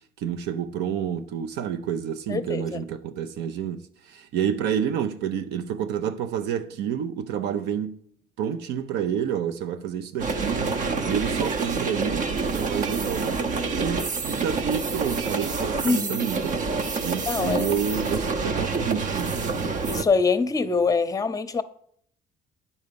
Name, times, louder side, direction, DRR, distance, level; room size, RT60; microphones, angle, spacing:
voice 1, 0.2-8.0 8.4-10.8 11.1-13.4 13.7-16.6 17.0-19.4, right 8 dB, 85° right, 0.6 m, -29 dB
voice 2, 2.3-2.8 15.8-16.3 17.3-17.8 19.9-21.6, left 4 dB, 20° left, 0.7 m, -24 dB
sound 1, 10.2-20.0, right 4 dB, 50° right, 0.7 m, -27 dB
9.4 x 4.2 x 6.8 m
cardioid pair, 110°, 17 cm